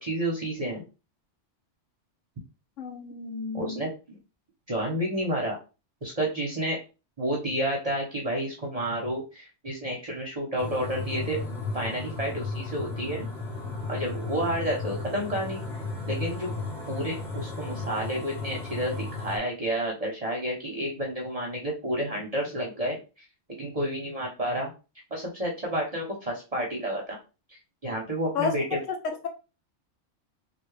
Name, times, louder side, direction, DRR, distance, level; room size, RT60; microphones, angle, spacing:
voice 1, 0.0-0.8 3.5-4.2 4.7-5.6 6.0-6.8 7.2-11.4 11.7-13.3 13.9-15.6 16.1-16.5 16.9-23.0 23.6-24.7 25.1-27.2 27.5-28.8, equal, 35° right, 0.8 m, -30 dB
voice 2, 2.8-3.8 28.3-28.6 29.0-29.3, left 5 dB, 85° left, 1.1 m, -31 dB
sound 1, 10.6-19.4, left 3 dB, 5° left, 1.0 m, -34 dB
3.3 x 2.5 x 3.1 m
omnidirectional pair, 1.2 m